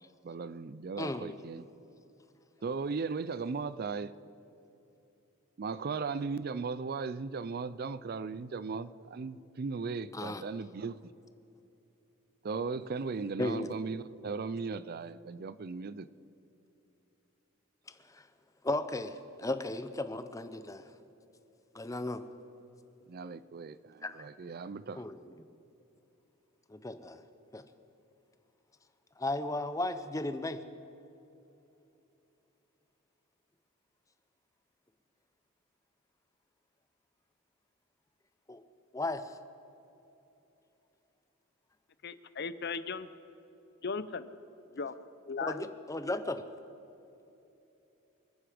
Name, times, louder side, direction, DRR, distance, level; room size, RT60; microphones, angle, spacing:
voice 1, 0.2-1.6 2.6-4.1 5.6-11.0 12.4-16.1 23.1-25.0, right 4 dB, 45° right, 0.4 m, -37 dB
voice 2, 1.0-1.3 10.1-10.4 13.4-13.8 17.9-18.3 18.6-20.9 21.7-22.2 24.0-24.2 25.0-25.3 26.7-27.2 27.5-27.6 29.2-30.6 38.5-38.6 38.9-39.4 45.4-46.4, left 2 dB, 15° left, 0.7 m, -35 dB
voice 3, 42.0-43.1 43.8-44.3 44.7-45.0 45.3-45.7, left 5 dB, 55° left, 0.6 m, -37 dB
27.5 x 9.8 x 5.1 m
head